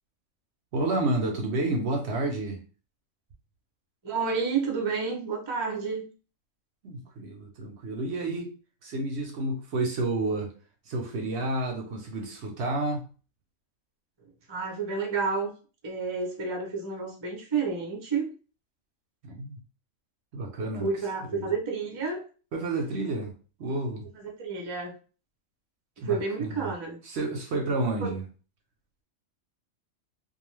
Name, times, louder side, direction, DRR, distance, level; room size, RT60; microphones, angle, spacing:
voice 1, 0.7-2.6 6.8-8.5 8.8-10.5 10.9-13.1 19.2-19.6 20.3-20.9 21.3-21.4 22.5-23.3 23.6-24.1 26.0-26.7 27.0-28.2, right 2 dB, 65° right, 0.8 m, -30 dB
voice 2, 4.0-6.1 14.5-15.5 15.8-18.3 20.8-22.3 24.1-25.0 26.0-27.0 28.0-28.1, right 5 dB, 35° right, 0.4 m, -30 dB
2.4 x 2.3 x 3.1 m
omnidirectional pair, 1.4 m